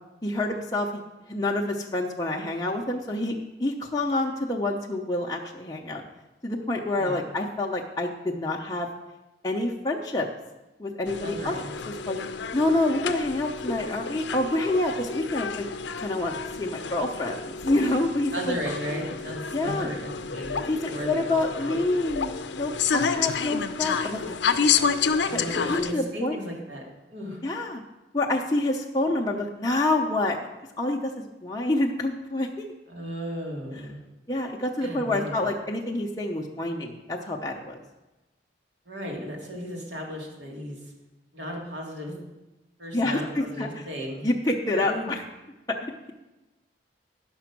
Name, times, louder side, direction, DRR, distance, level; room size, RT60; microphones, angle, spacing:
voice 1, 0.2-1.0 1.3-6.0 6.4-8.9 9.4-10.3 10.8-11.5 12.1-12.2 12.5-15.7 16.0-18.6 19.5-19.9 20.7-24.4 24.7-24.9 25.3-25.4 25.7-26.4 27.4-27.8 28.1-30.4 30.8-32.7 34.3-37.8 42.9-43.7 44.2-45.2, left 2 dB, 20° left, -2 dB, 0.7 m, -27 dB
sound 1, 11.1-25.9, left 6 dB, 75° left, 0.5 m, -30 dB
voice 2, 11.2-11.7 18.3-21.8 25.3-26.8 27.1-27.4 32.9-34.0 34.8-35.5 38.9-40.8 41.3-42.1 42.8-44.3 44.7-45.1, equal, 75° right, -1 dB, 2.6 m, -35 dB
10.5 x 6.1 x 5.9 m, 1.0 s
head